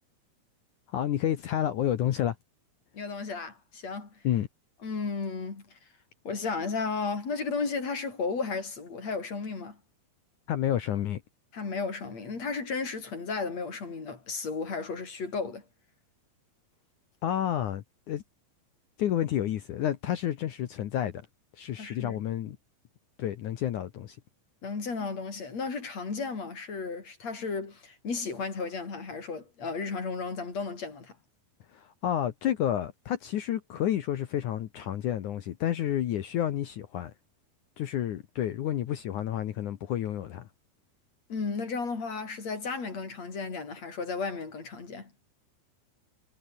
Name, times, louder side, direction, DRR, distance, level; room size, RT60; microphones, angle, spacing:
voice 1, 0.9-2.4 4.2-4.5 10.5-11.2 17.2-18.2 19.0-21.3 21.6-22.6 23.2-24.2 31.7-37.1 37.8-40.5, left 11 dB, 65° left, 2.2 m, -30 dB
voice 2, 2.9-4.1 4.8-5.7 6.2-9.8 11.5-15.6 21.8-22.2 24.6-31.2 41.3-45.1, left 4 dB, 40° left, 5.9 m, -34 dB
omnidirectional pair, 4.7 m